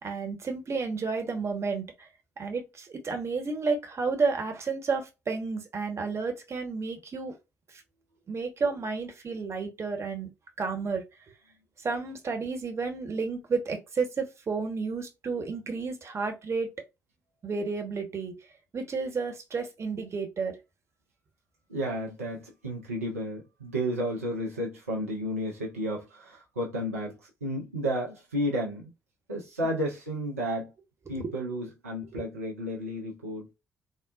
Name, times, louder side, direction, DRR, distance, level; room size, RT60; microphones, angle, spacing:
voice 1, 0.0-2.1 2.4-7.3 7.7-7.8 8.3-10.3 10.6-11.0 11.8-16.7 17.4-18.4 18.7-20.6 31.1-31.3 32.1-32.2, right 4 dB, 40° right, 1.0 m, -31 dB
voice 2, 21.7-28.9 29.3-30.7 31.1-33.5, equal, 90° right, 0.6 m, -32 dB
3.8 x 2.1 x 2.3 m
figure-of-eight pair, 45°, 7 cm